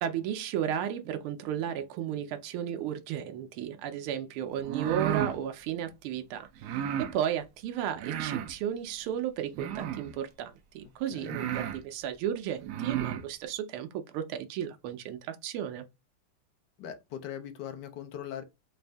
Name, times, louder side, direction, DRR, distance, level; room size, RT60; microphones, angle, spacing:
voice 1, 0.0-15.8, right 10 dB, 85° right, 1.5 m, -34 dB
sound 1, 4.6-5.4 6.6-7.1 8.0-8.5 9.5-10.1 10.8-10.9 11.2-11.8 12.6-13.2, right 10 dB, 70° right, 1.0 m, -33 dB
voice 2, 16.8-18.4, left 9 dB, 65° left, 1.2 m, -40 dB
4.1 x 2.5 x 3.3 m
omnidirectional pair, 2.3 m